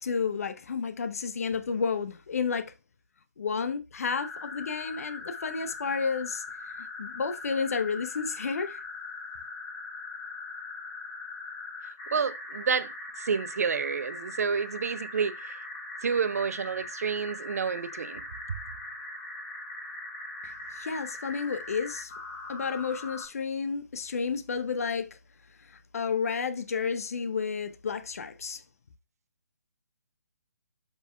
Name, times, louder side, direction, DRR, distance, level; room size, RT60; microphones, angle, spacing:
voice 1, 0.0-2.7 3.4-6.4 6.8-8.8 20.4-22.1 22.5-25.1 25.7-28.6, left 5 dB, 60° left, 0.9 m, -31 dB
sound 1, 4.2-23.3, left 2 dB, 35° left, 3.4 m, -41 dB
voice 2, 12.1-15.6 16.0-18.2 18.5-18.6, right 6 dB, 60° right, 0.6 m, -29 dB
7.9 x 5.3 x 2.3 m
figure-of-eight pair, 135°, 9 cm